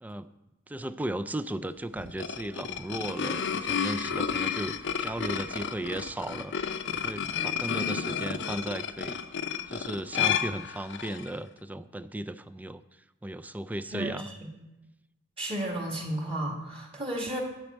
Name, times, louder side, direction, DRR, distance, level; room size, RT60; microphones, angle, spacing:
voice 1, 0.7-6.5 6.9-9.2 9.7-12.8 13.2-14.2, right 1 dB, 10° right, 13 dB, 0.3 m, -36 dB
sound 1, 2.0-11.3, left 7 dB, 65° left, 0.7 m, -31 dB
voice 2, 13.9-14.3 15.4-17.4, right 1 dB, 30° right, 0 dB, 1.9 m, -33 dB
12.0 x 5.2 x 8.2 m, 1.0 s
head